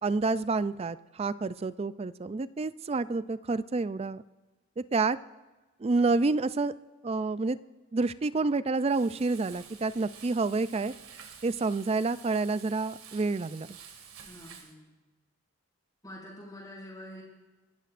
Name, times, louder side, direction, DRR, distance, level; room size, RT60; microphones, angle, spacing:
voice 1, 0.0-4.2 4.9-5.2 5.8-6.7 7.0-7.6 7.9-10.9 11.4-13.8, right 3 dB, 30° right, 15 dB, 0.3 m, -28 dB
Frying (food), 8.8-14.7, right 7 dB, 90° right, 2.0 m, -50 dB
voice 2, 14.2-14.9 16.0-17.2, left 1 dB, 15° left, -5 dB, 5.5 m, -46 dB
29.5 x 12.5 x 2.5 m, 1.2 s
head